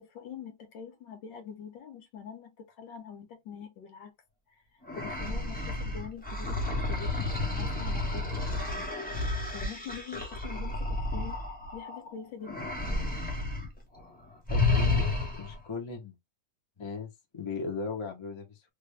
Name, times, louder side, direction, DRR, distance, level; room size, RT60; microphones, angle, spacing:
voice 1, 0.0-4.1 4.9-11.4 11.7-12.7, left 7 dB, 70° left, 1.5 m, -45 dB
sound 1, 4.8-12.0 12.4-13.7 13.9-14.1 14.5-15.6, left 2 dB, 5° left, 0.8 m, -31 dB
voice 2, 14.5-15.0 15.4-16.2 16.8-18.7, left 4 dB, 40° left, 0.4 m, -37 dB
3.3 x 2.6 x 3.3 m
omnidirectional pair, 2.2 m